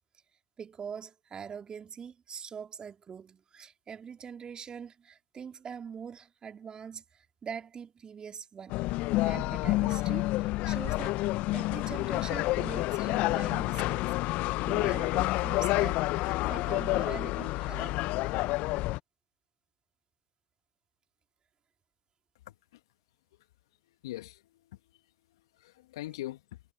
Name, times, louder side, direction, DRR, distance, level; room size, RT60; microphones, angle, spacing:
voice 1, 0.6-8.9 9.2-14.1 14.7-18.1, right 7 dB, 35° right, 3.3 m, -43 dB
sound 1, 8.7-19.0, left 19 dB, 55° left, 0.8 m, -29 dB
voice 2, 22.5-22.8 23.9-25.0 25.3-26.6, left 16 dB, 75° left, 2.0 m, -43 dB
figure-of-eight pair, 70°, 3 cm